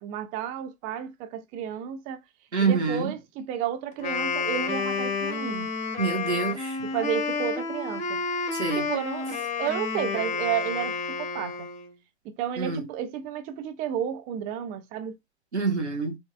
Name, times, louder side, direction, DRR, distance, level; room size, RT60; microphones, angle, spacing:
voice 1, 0.0-2.2 2.6-5.7 6.8-8.2 8.7-9.3 9.6-11.7 12.4-15.1, right 9 dB, 25° right, 0.5 m, -32 dB
voice 2, 2.5-3.1 6.0-6.8 8.5-8.8 12.6-12.8 15.5-16.2, right 5 dB, 80° right, 1.5 m, -26 dB
Wind instrument woodwind instrument, 3.9-11.9, left 5 dB, 20° left, 1.2 m, -30 dB
4.3 x 3.3 x 2.4 m
figure-of-eight pair, 100°, 33 cm